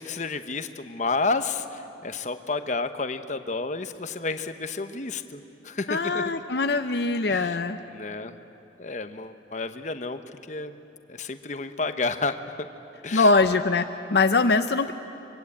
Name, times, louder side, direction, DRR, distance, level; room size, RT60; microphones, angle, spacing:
voice 1, 0.0-6.3 7.3-8.3 8.8-10.8 11.1-12.4 13.0-13.3, left 3 dB, 40° left, 9 dB, 1.0 m, -31 dB
voice 2, 5.9-7.8 13.1-14.9, left 3 dB, 65° left, 8 dB, 0.7 m, -22 dB
25.0 x 23.0 x 8.7 m, 2.9 s
head